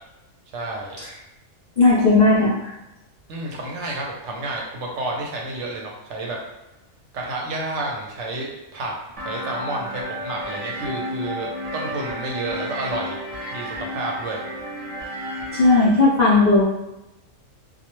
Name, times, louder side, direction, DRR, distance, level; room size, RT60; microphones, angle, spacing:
voice 1, 0.5-1.0 3.3-6.4 7.1-8.9 9.2-13.2 13.5-14.4, right 2 dB, 70° right, -1 dB, 0.8 m, -30 dB
voice 2, 1.8-2.6 15.5-16.6, left 3 dB, 60° left, -8 dB, 0.4 m, -15 dB
sound 1, 9.2-15.8, equal, 50° right, 0.4 m, -32 dB
2.3 x 2.0 x 2.9 m, 0.95 s
omnidirectional pair, 1.3 m